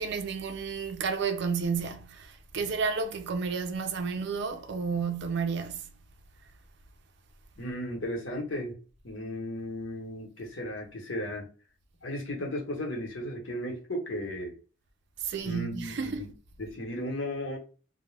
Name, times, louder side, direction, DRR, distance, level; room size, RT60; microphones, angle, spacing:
voice 1, 0.0-6.0 15.2-16.3, right 5 dB, 55° right, 0.4 m, -31 dB
voice 2, 7.6-8.8 9.0-11.4 12.0-14.5 15.4-16.3 16.6-17.6, left 1 dB, 70° left, 1.0 m, -35 dB
2.3 x 2.1 x 3.1 m
head